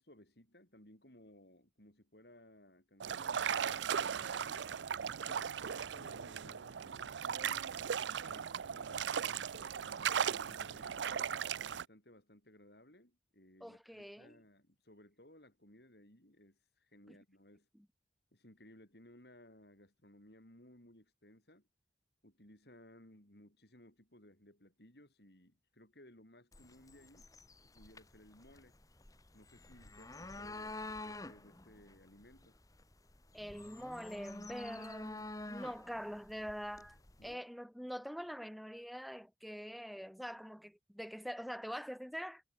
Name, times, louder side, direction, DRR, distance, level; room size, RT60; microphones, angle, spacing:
voice 1, 0.0-4.7 5.1-7.7 8.3-11.2 11.7-17.7 18.3-21.7 22.2-27.3 27.6-28.8 29.3-32.6 37.2-37.4, left 1 dB, 60° left, 6.4 m, -61 dB
sound 1, 3.0-11.8, right 7 dB, 80° right, 0.5 m, -37 dB
voice 2, 13.6-14.4 17.1-17.2 33.3-42.4, equal, ahead, 4.8 m, -44 dB
sound 2, 26.5-37.3, left 2 dB, 20° left, 1.5 m, -49 dB
head